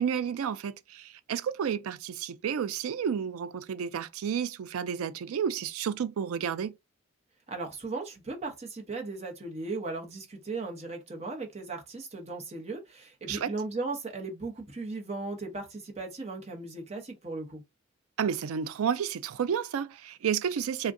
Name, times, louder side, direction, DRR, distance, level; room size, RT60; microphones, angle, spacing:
voice 1, 0.0-6.7 13.3-13.5 18.2-20.9, right 7 dB, 85° right, 0.4 m, -31 dB
voice 2, 7.5-17.6, right 3 dB, 30° right, 0.8 m, -37 dB
3.5 x 2.2 x 2.5 m
head